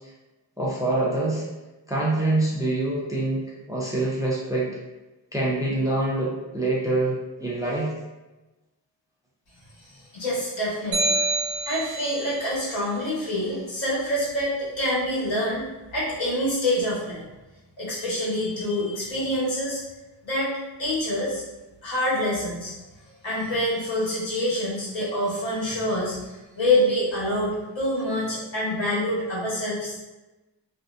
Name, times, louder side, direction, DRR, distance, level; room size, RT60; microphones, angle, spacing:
voice 1, 0.6-1.4 1.9-4.7 5.3-7.9, right 2 dB, 10° right, -5 dB, 0.4 m, -25 dB
voice 2, 10.1-11.1 11.7-15.7 15.9-17.2 17.8-19.8 20.2-20.5 20.8-21.4 21.8-22.7 23.2-30.0, left 1 dB, 75° left, -8 dB, 1.2 m, -26 dB
sound 1, 10.9-12.3, right 2 dB, 75° right, 0.9 m, -26 dB
2.5 x 2.1 x 2.4 m, 1.1 s
wide cardioid pair, 105°, 45 cm